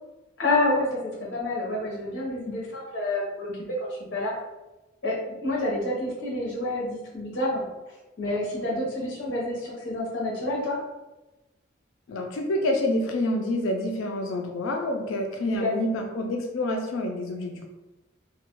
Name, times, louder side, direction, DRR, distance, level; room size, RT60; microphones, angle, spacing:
voice 1, 0.4-4.3 5.0-7.7 8.2-10.8 15.4-15.8, left 2 dB, 70° left, -4 dB, 0.8 m, -28 dB
voice 2, 12.1-17.7, left 1 dB, 85° left, 3 dB, 0.3 m, -27 dB
2.3 x 2.1 x 2.9 m, 1.1 s
head